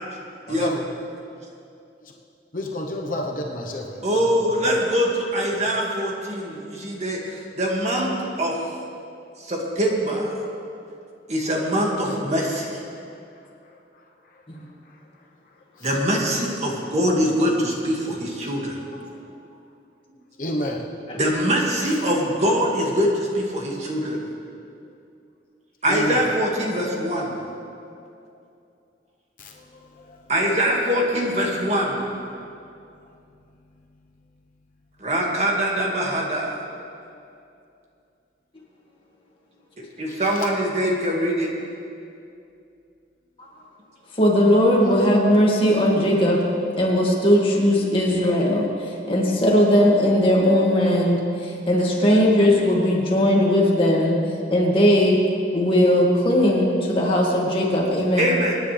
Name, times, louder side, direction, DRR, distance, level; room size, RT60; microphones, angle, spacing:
voice 1, 0.5-0.8 2.0-2.1 2.5-4.4 4.7-4.8 12.0-12.2 15.8-15.9 20.4-20.9 25.9-26.3 29.4-30.2 44.8-44.9, left 1 dB, 50° left, 0 dB, 1.1 m, -30 dB
voice 2, 4.0-8.6 9.4-10.3 11.3-12.8 15.8-18.8 21.2-24.2 25.8-27.4 30.3-32.1 35.0-36.5 40.0-41.5 58.2-58.5, equal, 40° right, -2 dB, 2.2 m, -23 dB
voice 3, 44.2-46.4 46.8-54.2 54.5-55.2 55.5-58.4, equal, 30° left, -3 dB, 2.1 m, -19 dB
26.0 x 10.0 x 3.4 m, 2.6 s
head